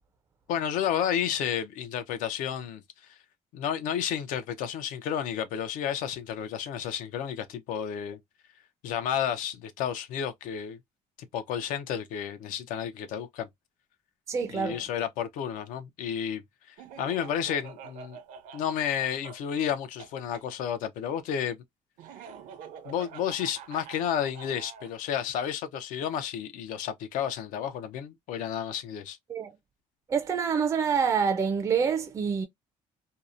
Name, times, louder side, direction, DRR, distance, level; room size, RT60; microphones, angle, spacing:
voice 1, 0.5-3.2 3.5-8.2 8.8-10.8 11.3-13.5 14.5-16.4 16.7-18.2 18.5-21.6 22.8-29.2, left 9 dB, 85° left, 0.5 m, -31 dB
voice 2, 14.3-14.8 29.3-29.5 30.1-32.5, right 6 dB, 25° right, 0.3 m, -26 dB
Laughter, 16.8-20.4 22.0-24.9, right 7 dB, 80° right, 0.6 m, -46 dB
2.7 x 2.0 x 2.4 m
cardioid pair, 160°, 13 cm